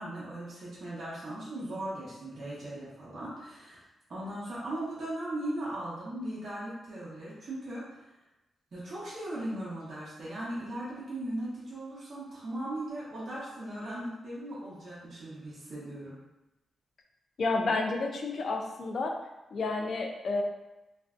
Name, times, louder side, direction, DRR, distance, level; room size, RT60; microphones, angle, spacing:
voice 1, 0.0-3.8 4.1-7.8 8.7-16.2, right 1 dB, 50° right, -9 dB, 0.8 m, -38 dB
voice 2, 17.4-19.1 19.5-20.4, left 3 dB, 55° left, 2 dB, 0.3 m, -30 dB
2.5 x 2.1 x 2.4 m, 0.98 s
wide cardioid pair, 135°, 0 cm